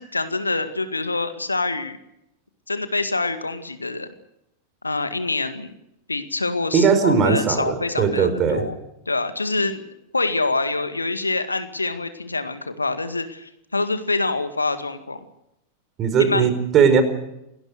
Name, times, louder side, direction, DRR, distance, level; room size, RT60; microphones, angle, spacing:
voice 1, 0.0-2.0 2.7-4.1 4.8-5.7 6.1-8.8 9.1-9.9 10.1-15.2 16.2-16.5, left 3 dB, 80° left, 10 dB, 2.0 m, -25 dB
voice 2, 6.7-8.6 16.0-17.0, right 6 dB, 30° right, 11 dB, 4.7 m, -18 dB
28.0 x 19.0 x 6.6 m, 0.84 s
figure-of-eight pair, 90°, 0 cm